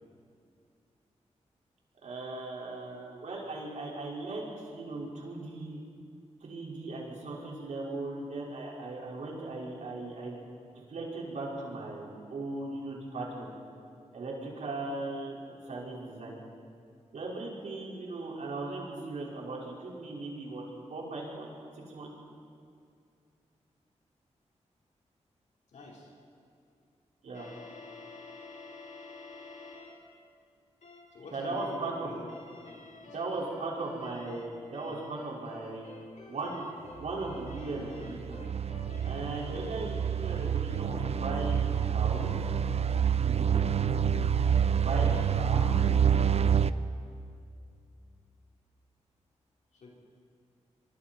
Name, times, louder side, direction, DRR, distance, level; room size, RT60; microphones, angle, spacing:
voice 1, 2.0-5.8 6.4-10.4 10.9-13.5 14.1-16.4 17.1-20.6 20.9-21.5 21.9-22.1 27.2-27.5 31.3-32.2 33.0-36.0 36.3-36.7 37.0-38.4 39.0-42.3 43.2-43.6 44.7-45.8, right 2 dB, 75° right, -4 dB, 5.3 m, -38 dB
voice 2, 25.7-26.1 31.1-32.3 32.6-33.0 49.7-49.9, left 2 dB, 90° left, -3 dB, 4.8 m, -47 dB
sound 1, 27.3-30.1 30.8-31.1 31.6-31.9 32.3-39.4, left 4 dB, 70° left, 2.7 m, -50 dB
sound 2, 37.0-46.7, right 8 dB, 60° right, 0.6 m, -27 dB
24.0 x 24.0 x 4.6 m, 2.3 s
wide cardioid pair, 85°, 12 cm